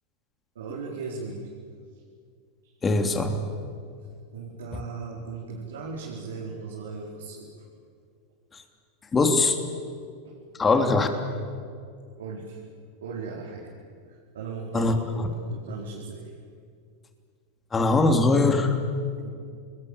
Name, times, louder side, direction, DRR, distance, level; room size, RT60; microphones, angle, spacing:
voice 1, 0.5-1.5 4.3-7.5 10.2-10.4 12.2-12.6 13.0-13.7 14.1-14.9 15.5-16.3 19.2-19.3, right 4 dB, 75° right, -3 dB, 4.7 m, -37 dB
voice 2, 2.8-3.3 4.7-4.8 8.5-8.6 9.1-9.6 10.6-11.1 14.7-15.3 17.7-18.8, left 3 dB, 20° left, 5 dB, 3.3 m, -21 dB
29.0 x 21.0 x 8.9 m, 2.2 s
hypercardioid pair, 95°, 0 cm